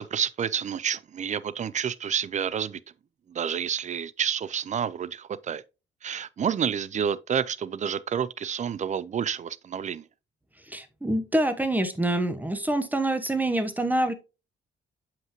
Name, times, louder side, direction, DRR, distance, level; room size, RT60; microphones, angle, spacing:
voice 1, 0.0-2.8 3.3-5.6 6.0-10.0, right 8 dB, 35° right, 0.4 m, -29 dB
voice 2, 10.6-14.1, right 1 dB, 10° right, 1.0 m, -26 dB
7.2 x 5.7 x 3.0 m
cardioid pair, 90°, 20 cm